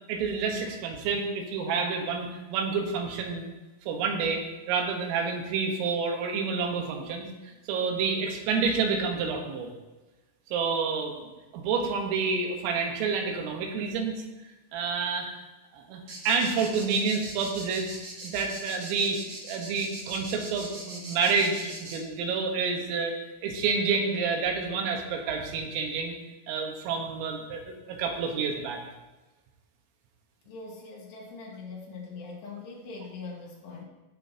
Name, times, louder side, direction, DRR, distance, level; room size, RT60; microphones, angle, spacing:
voice 1, 0.1-3.5 3.9-9.7 10.5-11.2 11.5-14.2 14.7-15.5 15.7-18.0 18.2-19.2 19.4-26.2 26.5-28.8, right 5 dB, 90° right, 2 dB, 4.0 m, -29 dB
sound 1, 16.1-22.0, right 2 dB, 50° right, 1.4 m, -41 dB
voice 2, 30.4-33.8, left 4 dB, 65° left, -2 dB, 3.5 m, -42 dB
17.0 x 7.6 x 2.9 m, 1.1 s
omnidirectional pair, 5.7 m